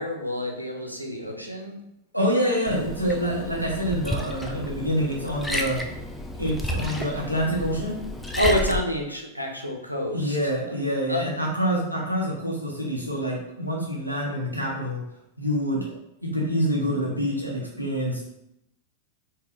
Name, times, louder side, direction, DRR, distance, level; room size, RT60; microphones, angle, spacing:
voice 1, 0.0-1.7 8.3-10.5 11.1-11.2, equal, 90° left, 1 dB, 0.5 m, -28 dB
voice 2, 2.1-5.8 6.4-8.0 10.1-15.0 15.4-15.9 16.2-18.3, equal, 90° right, -3 dB, 0.7 m, -26 dB
Liquid, 2.7-8.8, equal, 5° left, 0.3 m, -32 dB
3.5 x 2.1 x 2.5 m, 0.84 s
figure-of-eight pair, 90°, 0 cm